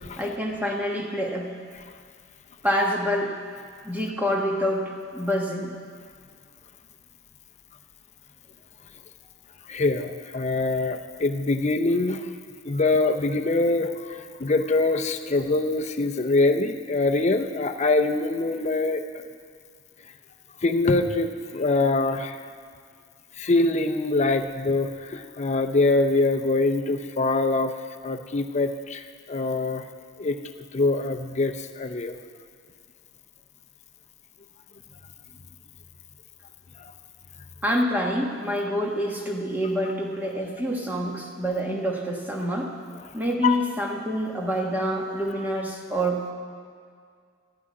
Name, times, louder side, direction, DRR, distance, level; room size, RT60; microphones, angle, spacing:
voice 1, 0.2-1.5 2.6-3.4 3.8-5.7 37.6-42.7 43.1-46.2, equal, 10° right, -1 dB, 1.3 m, -27 dB
voice 2, 9.7-12.3 12.6-19.2 20.6-22.4 23.4-27.8 28.0-29.8 30.2-30.4 30.7-32.2 43.4-43.6, left 2 dB, 35° left, 6 dB, 0.6 m, -24 dB
12.0 x 6.2 x 9.4 m, 2.1 s
head